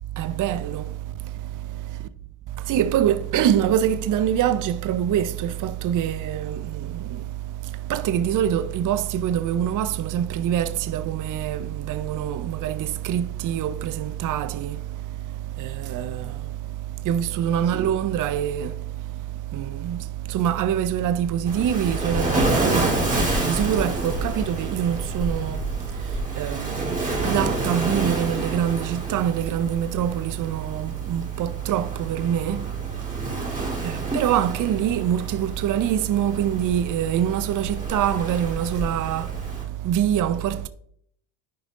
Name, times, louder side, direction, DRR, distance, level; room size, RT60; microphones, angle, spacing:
voice 1, 0.2-2.0 2.6-40.7, right 10 dB, 40° right, 0.6 m, -25 dB
Waves surf, 21.5-39.6, right 1 dB, 15° right, 3.2 m, -29 dB
11.0 x 5.1 x 2.5 m
supercardioid pair, 75°, 50 cm